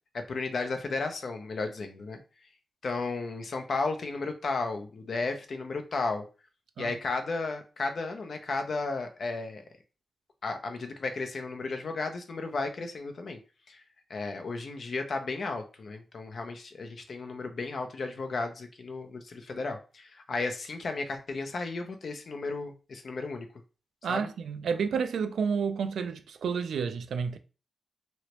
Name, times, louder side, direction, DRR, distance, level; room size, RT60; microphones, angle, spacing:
voice 1, 0.3-2.2 2.8-6.2 6.8-9.6 10.4-13.4 13.7-13.8 14.1-23.5 24.1-24.3, left 3 dB, 55° left, 0.6 m, -34 dB
voice 2, 24.0-27.4, right 6 dB, 90° right, 0.4 m, -30 dB
3.1 x 2.9 x 3.0 m
wide cardioid pair, 110°, 0 cm